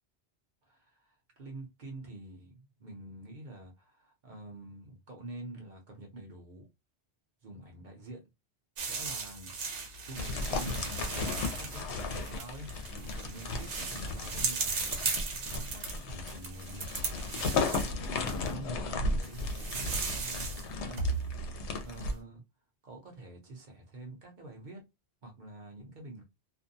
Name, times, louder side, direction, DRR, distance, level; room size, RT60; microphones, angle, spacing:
voice 1, 0.6-6.7 7.4-8.2 8.9-9.8 10.1-16.8 17.6-21.5 21.8-22.4 22.8-24.8 25.2-26.2, right 2 dB, 45° right, 0.8 m, -47 dB
sound 1, 8.8-18.5 19.2-20.7 21.0-21.9, right 4 dB, 85° right, 1.1 m, -37 dB
sound 2, 10.1-22.1, left 3 dB, 75° left, 0.9 m, -35 dB
2.5 x 2.1 x 2.6 m
omnidirectional pair, 1.2 m